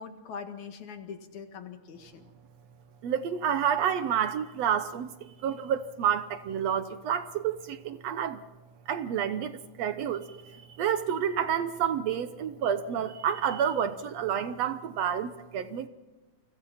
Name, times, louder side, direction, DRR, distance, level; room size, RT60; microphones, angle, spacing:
voice 1, 0.0-2.3, left 6 dB, 75° left, 3.1 m, -42 dB
voice 2, 3.0-8.4 8.9-15.9, right 8 dB, 70° right, 1.9 m, -29 dB
29.0 x 24.5 x 4.3 m
omnidirectional pair, 3.4 m